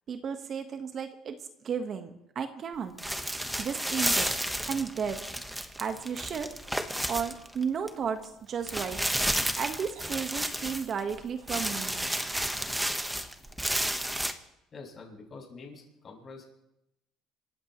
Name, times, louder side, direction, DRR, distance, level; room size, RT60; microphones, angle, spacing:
voice 1, 0.1-2.9 3.6-4.3 4.7-5.2 5.8-6.5 7.1-9.1 9.6-12.1 13.7-13.9, right 6 dB, 45° right, 7 dB, 1.4 m, -34 dB
sound 1, 3.0-7.9 8.2-8.3 8.7-11.2 11.5-14.3, right 1 dB, 5° right, 1.3 m, -31 dB
sound 2, 8.5-9.1 9.9-10.1 11.3-12.3 13.0-13.2, right 7 dB, 90° right, 4.3 m, -51 dB
voice 2, 14.7-16.5, left 4 dB, 40° left, -1 dB, 6.8 m, -46 dB
27.0 x 15.0 x 3.2 m, 0.87 s
cardioid pair, 100°, 0 cm